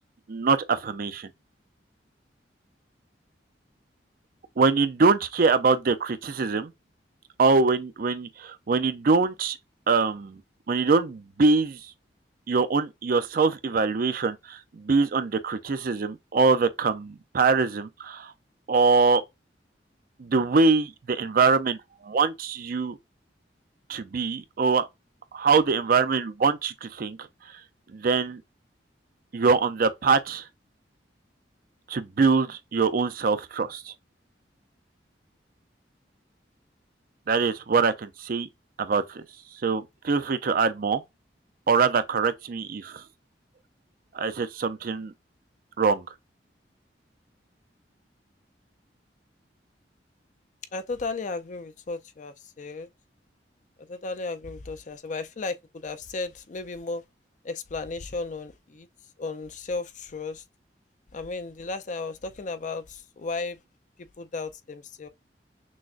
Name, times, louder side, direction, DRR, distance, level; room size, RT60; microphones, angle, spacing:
voice 1, 0.3-1.3 4.6-6.7 7.4-9.6 9.9-10.4 10.7-11.8 12.5-18.3 18.7-19.2 20.2-21.8 22.0-23.0 23.9-24.9 25.3-27.3 27.9-28.4 29.3-30.4 31.9-33.9 37.3-38.5 38.8-39.2 39.6-41.0 41.7-43.0 44.1-45.1 45.8-46.1, right 4 dB, 50° right, 0.4 m, -23 dB
voice 2, 50.7-52.9 53.8-57.0 57.4-58.9 59.2-60.4 61.1-63.6 64.0-65.1, left 3 dB, 45° left, 0.5 m, -34 dB
6.2 x 2.1 x 2.4 m
head